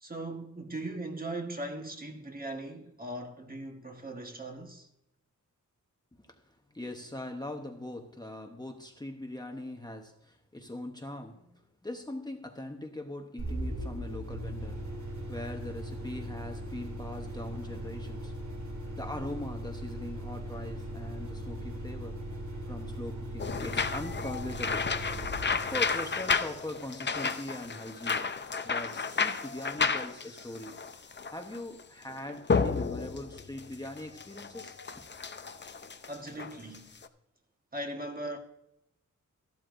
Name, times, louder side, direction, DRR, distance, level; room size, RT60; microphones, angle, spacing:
voice 1, 0.0-4.9 36.1-36.9 37.7-38.4, right 1 dB, 30° right, 1.4 m, -39 dB
voice 2, 6.2-18.6 18.9-24.9 25.5-28.3 28.6-30.8 31.3-35.0, left 1 dB, 15° left, 1.0 m, -41 dB
sound 1, 13.4-26.9, right 1 dB, 65° right, 2.1 m, -39 dB
sound 2, 23.4-37.1, left 5 dB, 35° left, 0.6 m, -32 dB
13.5 x 12.5 x 2.6 m
wide cardioid pair, 130°, 31 cm